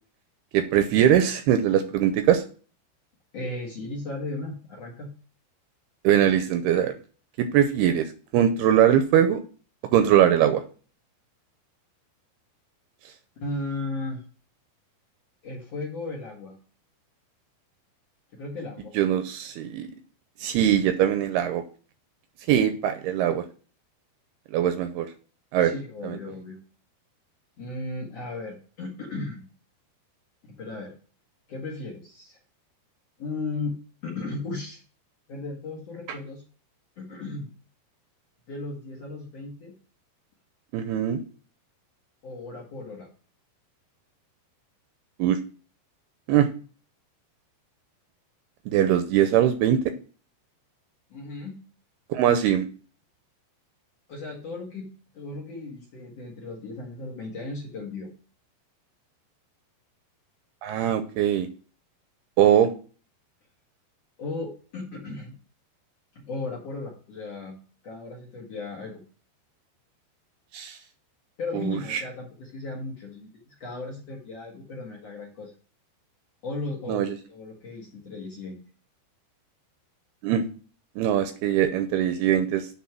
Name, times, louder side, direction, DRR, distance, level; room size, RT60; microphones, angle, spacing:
voice 1, 0.5-2.4 6.0-7.0 7.4-9.4 9.8-10.6 19.0-19.9 20.4-21.6 22.5-23.4 24.5-25.1 25.5-25.7 26.0-26.2 40.7-41.2 45.2-45.4 46.3-46.5 48.7-49.9 52.1-52.7 60.6-61.5 62.4-62.7 70.5-70.8 71.5-72.0 76.9-77.2 80.2-80.4 81.0-82.7, right 10 dB, 85° right, 9 dB, 2.4 m, -21 dB
voice 2, 3.3-5.1 13.4-14.2 15.4-16.5 18.3-18.9 25.6-26.6 27.6-29.4 30.4-30.9 31.5-32.4 33.2-33.8 34.0-34.8 35.3-36.4 37.0-37.5 38.5-39.7 42.2-43.1 51.1-51.6 54.1-54.9 55.1-58.1 64.2-65.4 66.1-67.6 67.8-69.0 71.4-75.5 76.4-78.6, left 2 dB, 55° left, -3 dB, 2.0 m, -35 dB
9.6 x 4.1 x 6.0 m, 0.39 s
omnidirectional pair, 5.0 m